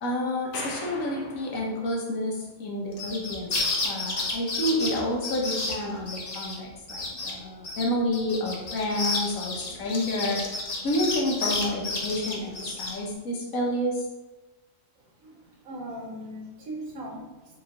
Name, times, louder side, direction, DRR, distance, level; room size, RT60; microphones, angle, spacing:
voice 1, 0.0-3.6 3.8-10.5 10.8-14.0, left 1 dB, 90° left, -2 dB, 1.4 m, -29 dB
sound 1, 0.5-2.9, left 2 dB, 65° left, 1.0 m, -41 dB
sound 2, 2.9-6.6 6.9-7.3 7.6-13.0, left 3 dB, 40° left, 0.6 m, -31 dB
voice 2, 14.9-17.6, right 1 dB, 85° right, -2 dB, 1.5 m, -40 dB
4.3 x 3.0 x 3.7 m, 1.1 s
omnidirectional pair, 1.4 m